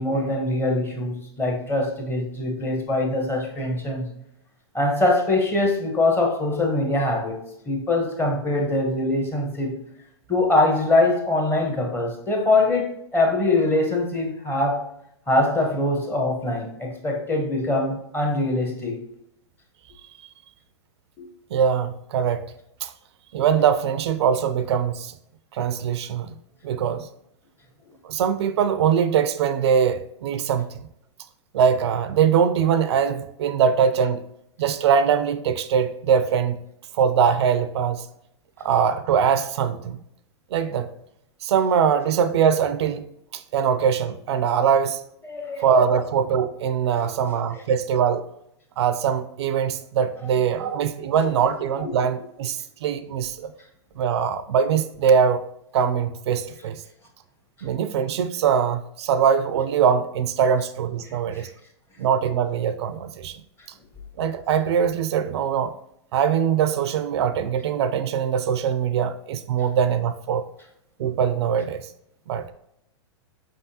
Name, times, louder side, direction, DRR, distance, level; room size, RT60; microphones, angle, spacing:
voice 1, 0.0-4.1 4.7-7.4 7.7-9.7 10.3-14.8 15.3-19.0 21.2-21.3 45.2-45.6 50.6-50.7 51.8-51.9 61.3-61.5, left 2 dB, 15° left, 1.0 m, -23 dB
voice 2, 21.5-22.5 22.8-22.9 23.3-25.1 25.5-26.3 26.6-27.1 28.1-30.7 31.5-34.2 34.6-36.6 37.0-38.0 38.6-40.0 40.5-40.9 41.4-43.1 43.3-45.0 45.6-48.2 48.8-53.5 54.0-55.4 55.7-56.8 57.6-61.5 62.0-63.4 64.2-65.8 66.1-70.4 71.0-71.9 72.3-72.5, right 7 dB, 65° right, 0.4 m, -22 dB
5.1 x 3.4 x 2.8 m
hypercardioid pair, 120°, 15 cm